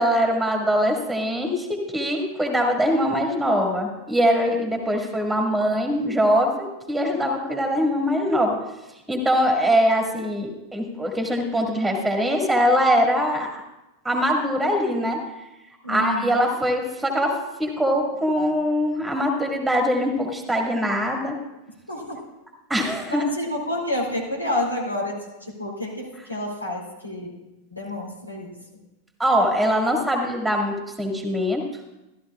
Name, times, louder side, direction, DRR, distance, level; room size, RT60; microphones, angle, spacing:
voice 1, 0.0-8.6 9.1-13.6 14.0-15.2 15.9-21.4 22.7-23.2 29.2-31.6, equal, 5° right, 2 dB, 2.0 m, -22 dB
voice 2, 15.8-16.4 21.9-22.2 23.1-27.3 27.7-28.5, left 1 dB, 85° left, -4 dB, 2.6 m, -29 dB
14.5 x 12.5 x 2.4 m, 0.97 s
figure-of-eight pair, 90°, 0 cm